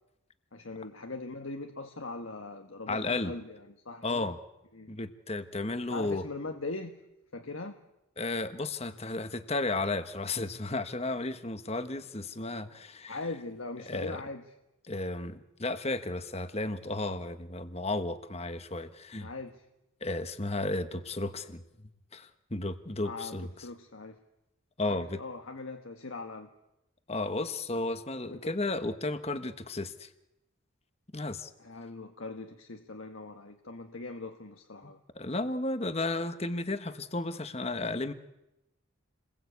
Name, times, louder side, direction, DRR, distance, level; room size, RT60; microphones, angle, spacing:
voice 1, 0.5-4.3 4.7-4.9 5.9-6.9 7.3-7.8 13.1-14.4 19.2-19.6 23.0-24.2 24.9-26.5 28.3-28.4 31.6-35.0, left 3 dB, 75° left, 5 dB, 1.5 m, -41 dB
voice 2, 2.9-3.3 4.0-4.4 4.9-6.2 8.2-13.2 13.9-14.2 14.9-19.3 20.0-21.6 22.1-23.6 24.8-25.2 27.1-30.1 31.1-31.5 35.1-38.1, left 2 dB, 30° left, 10 dB, 1.3 m, -33 dB
29.0 x 21.0 x 8.4 m, 0.94 s
head